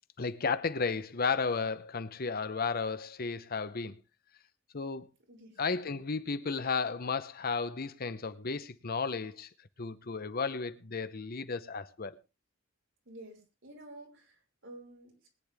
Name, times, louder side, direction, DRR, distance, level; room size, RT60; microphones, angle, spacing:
voice 1, 0.2-3.9 4.7-5.1 5.6-9.5 9.8-12.2, left 4 dB, 50° left, 0.8 m, -33 dB
voice 2, 5.3-5.6 13.1-15.3, right 1 dB, 65° right, 5.6 m, -51 dB
21.0 x 10.0 x 3.5 m
head